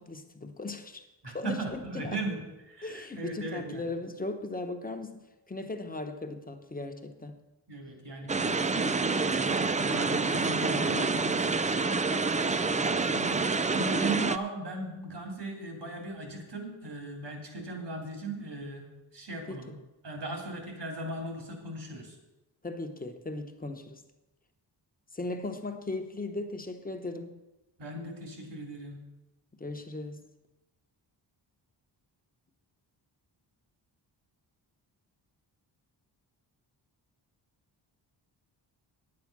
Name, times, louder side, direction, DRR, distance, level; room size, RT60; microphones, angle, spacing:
voice 1, 0.0-1.1 1.3-2.2 2.8-5.2 5.5-7.4 13.0-13.7 19.5-19.8 22.6-24.0 25.1-27.4 29.6-30.3, left 2 dB, 20° left, 1.0 m, -38 dB
voice 2, 1.2-2.4 2.7-3.8 7.7-12.0 12.7-13.3 13.7-18.9 19.1-19.7 20.0-22.1 27.8-29.0, right 2 dB, 70° right, 3.2 m, -38 dB
sound 1, 8.3-14.4, right 4 dB, 20° right, 0.3 m, -27 dB
9.6 x 8.6 x 6.0 m
wide cardioid pair, 115°, 43 cm